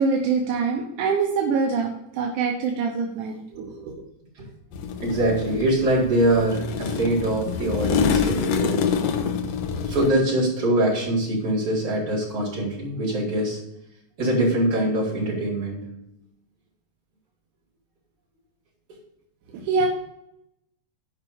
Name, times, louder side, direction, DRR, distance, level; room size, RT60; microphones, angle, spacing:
voice 1, 0.0-3.9 19.5-19.9, right 5 dB, 85° right, 0 dB, 2.6 m, -24 dB
sound 1, 4.7-10.1, left 6 dB, 70° left, 1.8 m, -26 dB
voice 2, 5.0-8.8 9.8-13.6 14.2-15.8, right 1 dB, 50° right, -7 dB, 5.2 m, -23 dB
9.5 x 5.5 x 7.1 m, 0.81 s
omnidirectional pair, 3.5 m